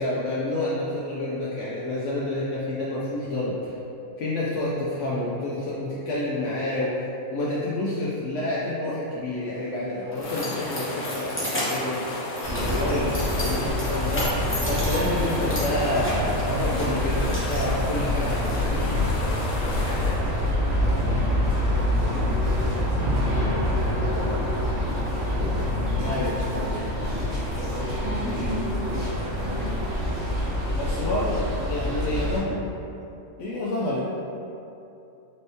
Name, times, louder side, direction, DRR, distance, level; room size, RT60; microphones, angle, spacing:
voice 1, 0.0-3.7 4.2-7.0 7.3-12.2 12.5-18.8 26.0-26.3 30.7-31.4 31.7-32.6 33.4-34.1, left 1 dB, 70° left, -6 dB, 0.8 m, -29 dB
Keys jangling, 9.4-18.5, equal, 15° left, 0.5 m, -34 dB
sound 1, 10.2-20.2, left 2 dB, 90° left, 1.1 m, -34 dB
sound 2, 12.4-32.4, left 1 dB, 70° right, 2.0 m, -26 dB
voice 2, 18.6-24.8 26.0-28.2 28.7-30.2 30.8-32.6, equal, 55° right, -5 dB, 0.6 m, -38 dB
4.3 x 3.4 x 2.7 m, 2.8 s
omnidirectional pair, 1.5 m